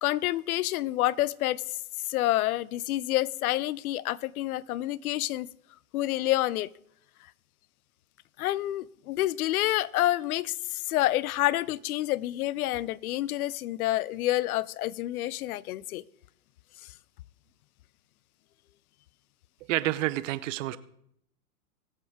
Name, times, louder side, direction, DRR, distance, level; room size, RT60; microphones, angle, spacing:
voice 1, 0.0-5.5 5.9-6.7 8.4-16.0, left 15 dB, 70° left, 22 dB, 0.6 m, -28 dB
voice 2, 19.7-20.8, right 16 dB, 55° right, 16 dB, 0.8 m, -28 dB
21.0 x 7.3 x 3.5 m, 0.73 s
hypercardioid pair, 115°, 45 cm